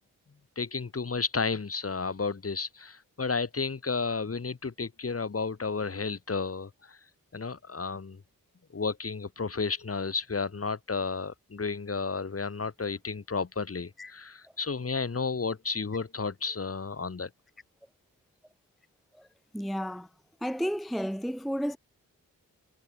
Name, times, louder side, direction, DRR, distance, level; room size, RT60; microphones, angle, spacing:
voice 1, 0.5-7.0 7.3-8.2 8.7-17.3, left 4 dB, 40° left, 1.5 m, -32 dB
voice 2, 19.5-20.1 20.4-21.8, equal, ahead, 0.6 m, -32 dB
cardioid pair, 45°, 36 cm